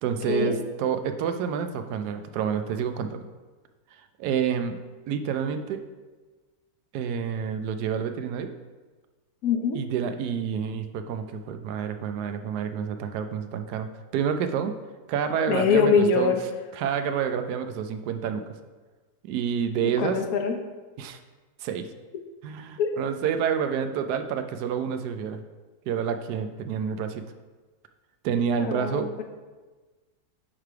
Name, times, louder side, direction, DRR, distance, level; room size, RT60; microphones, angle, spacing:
voice 1, 0.0-3.3 4.2-4.8 5.1-5.8 6.9-8.5 9.7-13.9 14.1-14.7 15.1-16.3 16.7-18.4 19.2-20.2 21.0-21.2 21.6-21.9 22.4-25.4 25.9-27.2 28.2-29.1, right 7 dB, 85° right, 8 dB, 1.1 m, -28 dB
voice 2, 9.4-9.8 15.5-16.4 19.8-20.6 22.8-22.9 28.6-29.2, left 5 dB, 70° left, 5 dB, 1.1 m, -23 dB
9.6 x 3.3 x 4.6 m, 1.3 s
omnidirectional pair, 1.7 m